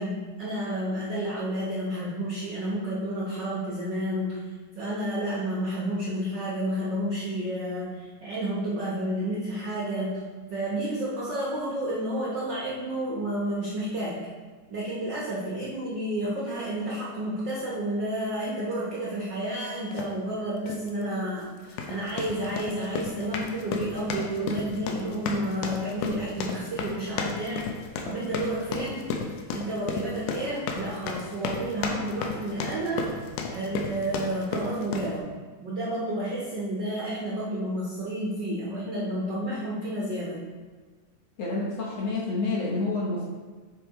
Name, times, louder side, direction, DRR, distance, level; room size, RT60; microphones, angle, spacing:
voice 1, 0.0-14.3 14.7-27.7 28.0-29.1 29.5-33.1 33.5-40.5, right 1 dB, 80° right, -7 dB, 1.0 m, -31 dB
sound 1, 19.9-20.1 20.7-20.9 21.6-35.2, left 4 dB, 90° left, 2.2 m, -34 dB
voice 2, 41.4-43.2, left 3 dB, 65° left, -4 dB, 1.8 m, -28 dB
8.0 x 4.6 x 3.0 m, 1.4 s
omnidirectional pair, 3.5 m